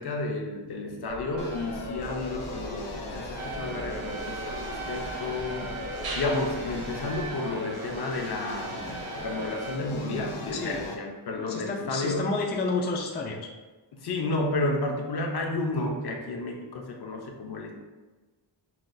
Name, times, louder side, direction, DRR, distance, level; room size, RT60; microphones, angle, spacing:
voice 1, 0.0-5.7 6.1-12.3 13.9-17.7, left 2 dB, 55° left, 1 dB, 0.7 m, -31 dB
sound 1, 1.0-7.3, right 2 dB, 50° right, 0.8 m, -40 dB
sound 2, 1.4-10.9, left 2 dB, 90° left, 0.8 m, -38 dB
sound 3, 3.4-9.8, right 5 dB, 85° right, 0.5 m, -41 dB
voice 2, 10.5-10.8 11.4-13.4, left 3 dB, 25° left, 0 dB, 0.3 m, -30 dB
5.9 x 2.2 x 2.6 m, 1.3 s
wide cardioid pair, 135°, 48 cm